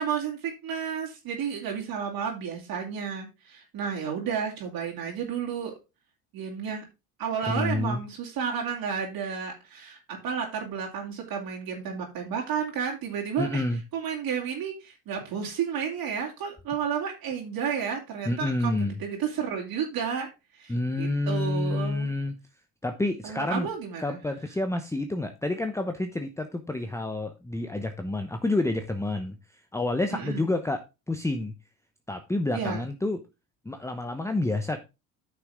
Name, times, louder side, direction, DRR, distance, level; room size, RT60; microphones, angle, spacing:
voice 1, 0.0-5.7 6.3-6.8 7.2-13.6 13.9-20.3 20.5-22.1 23.2-24.2 30.1-30.5 32.5-32.8, right 7 dB, 60° right, -1 dB, 2.9 m, -32 dB
voice 2, 7.5-8.0 13.4-13.8 18.2-18.9 20.7-22.3 22.8-23.7 24.0-31.5 32.1-33.2 33.6-34.8, left 2 dB, 5° left, 7 dB, 0.9 m, -29 dB
9.7 x 6.0 x 3.6 m, 0.26 s
supercardioid pair, 85°, 41 cm